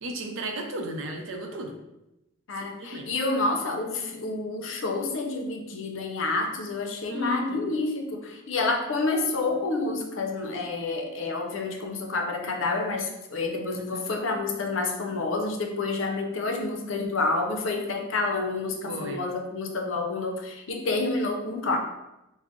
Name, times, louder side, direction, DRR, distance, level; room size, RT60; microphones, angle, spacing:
voice 1, 0.0-1.8 2.5-3.1 7.1-7.6 13.8-14.0 18.9-19.3, right 1 dB, 70° right, 2 dB, 0.6 m, -34 dB
voice 2, 2.5-21.8, left 3 dB, 70° left, 3 dB, 0.5 m, -29 dB
3.7 x 2.1 x 3.6 m, 0.91 s
head